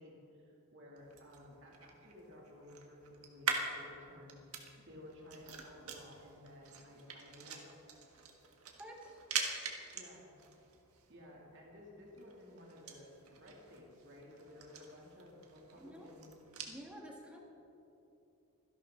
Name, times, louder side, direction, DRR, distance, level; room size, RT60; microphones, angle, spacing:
voice 1, 0.0-4.4 4.8-7.7 9.9-10.3 11.1-16.3, left 1 dB, 55° right, -3 dB, 2.8 m, -55 dB
sound 1, 1.0-16.8, right 5 dB, 80° right, 1.5 m, -45 dB
voice 2, 8.7-9.2 15.8-16.1 16.7-17.4, equal, 5° right, -1 dB, 1.7 m, -50 dB
25.0 x 11.0 x 3.9 m, 2.9 s
head